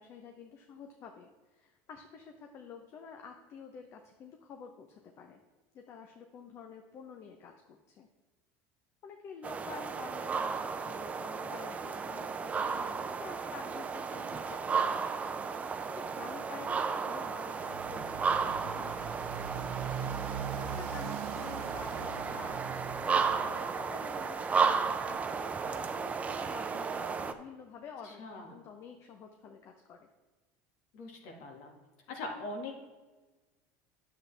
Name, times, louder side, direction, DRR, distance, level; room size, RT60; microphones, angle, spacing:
voice 1, 0.0-5.4 5.7-8.1 9.0-15.0 15.3-15.4 15.9-19.3 20.6-22.6 22.9-30.1, left 6 dB, 45° left, 4 dB, 0.8 m, -49 dB
sound 1, 9.4-27.3, right 5 dB, 20° right, 0.5 m, -34 dB
Motorcycle, 17.6-23.6, right 8 dB, 80° right, 0.6 m, -41 dB
voice 2, 28.0-28.5 30.9-31.7 32.1-32.7, left 2 dB, 70° left, 1 dB, 1.8 m, -41 dB
9.5 x 7.5 x 3.3 m, 1.3 s
supercardioid pair, 125°, 7 cm